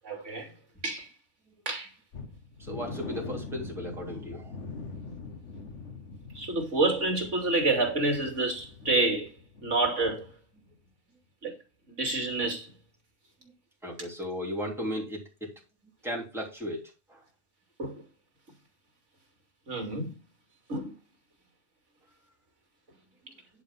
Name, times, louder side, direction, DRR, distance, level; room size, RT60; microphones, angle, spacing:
voice 1, 0.0-0.5 0.8-1.1 1.7-1.9 6.3-9.3 9.6-10.3 11.4-11.5 12.0-12.7 17.8-17.9 19.7-20.1 20.7-20.9, right 2 dB, 65° right, 3.1 m, -28 dB
sound 1, 2.1-9.9 10.1-10.3 10.7-10.8, left 3 dB, 65° left, 1.7 m, -43 dB
voice 2, 2.6-4.6 11.9-12.0 13.8-15.5 16.0-17.2, equal, ahead, 3.4 m, -36 dB
10.5 x 4.9 x 5.8 m
omnidirectional pair, 1.4 m